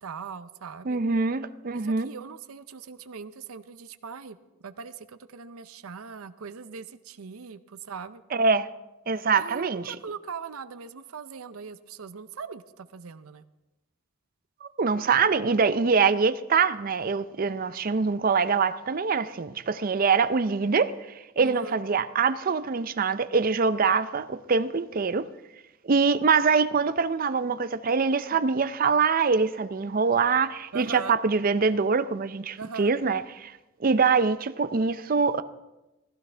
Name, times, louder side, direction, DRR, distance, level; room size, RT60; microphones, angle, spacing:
voice 1, 0.0-1.0 1.7-8.2 9.4-13.4 21.4-21.8 30.7-31.2 32.6-32.9, right 5 dB, 85° right, 0.6 m, -40 dB
voice 2, 0.9-2.1 8.3-8.7 9.1-9.9 14.6-20.9 21.4-25.3 25.8-33.5 33.8-35.4, right 5 dB, 40° right, 0.5 m, -24 dB
16.5 x 15.5 x 3.4 m
head